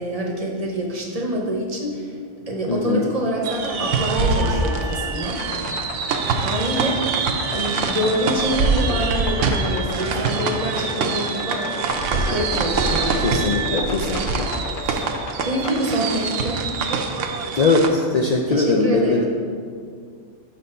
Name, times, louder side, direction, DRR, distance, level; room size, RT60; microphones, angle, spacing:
voice 1, 0.0-2.2 2.5-5.4 6.4-13.2 15.4-16.6 18.5-19.3, right 1 dB, 35° right, -1 dB, 0.8 m, -26 dB
voice 2, 2.7-3.1 13.2-14.5 14.8-15.0 17.5-19.3, left 3 dB, 80° left, 0 dB, 0.3 m, -21 dB
sound 1, 3.4-17.9, right 4 dB, 75° right, 0.9 m, -24 dB
sound 2, 3.6-13.8, right 5 dB, 5° left, 1.0 m, -37 dB
sound 3, 5.4-15.7, left 4 dB, 55° left, 0.7 m, -33 dB
6.2 x 4.2 x 5.4 m, 2.1 s
omnidirectional pair, 1.3 m